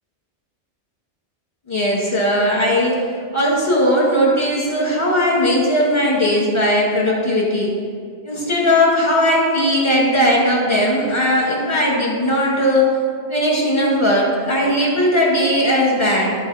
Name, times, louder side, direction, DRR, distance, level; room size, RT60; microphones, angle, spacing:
voice 1, 1.7-3.0 3.3-7.7 8.2-13.0 13.3-16.3, equal, 25° left, -4 dB, 2.1 m, -18 dB
9.6 x 4.7 x 5.7 m, 2.1 s
omnidirectional pair, 1.2 m